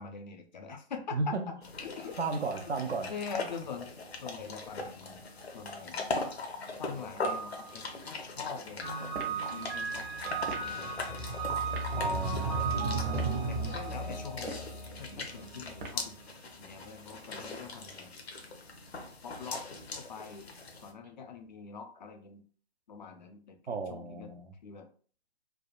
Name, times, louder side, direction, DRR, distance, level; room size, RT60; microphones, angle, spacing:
voice 1, 0.0-1.4 1.8-2.2 3.1-5.2 5.5-6.0 6.8-10.9 12.8-14.7 15.0-16.2 16.6-18.1 19.2-19.6 19.9-20.5 20.8-22.4 22.9-24.3 24.6-24.9, left 6 dB, 45° left, 0.5 m, -44 dB
voice 2, 1.1-1.4 2.2-3.1 12.0-13.4 23.7-24.5, right 4 dB, 90° right, 0.6 m, -35 dB
sound 1, 1.6-20.9, left 3 dB, 75° left, 0.8 m, -40 dB
sound 2, 8.8-16.1, right 4 dB, 20° right, 0.4 m, -34 dB
sound 3, 9.2-9.4 10.4-10.7 11.7-11.9 13.0-13.4 14.3-14.7 15.8-16.1, right 3 dB, 50° right, 0.8 m, -41 dB
3.3 x 2.1 x 2.4 m
figure-of-eight pair, 135°, 32 cm